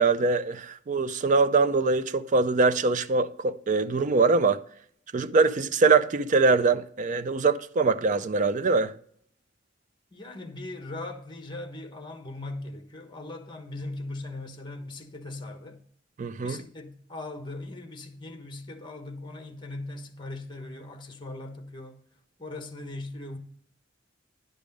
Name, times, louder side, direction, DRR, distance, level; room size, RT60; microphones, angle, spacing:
voice 1, 0.0-4.6 5.1-8.9 16.2-16.6, right 4 dB, 40° right, 0.5 m, -23 dB
voice 2, 10.1-15.8 16.4-22.0 22.4-23.4, left 2 dB, 25° left, 1.2 m, -39 dB
10.5 x 5.3 x 5.2 m
head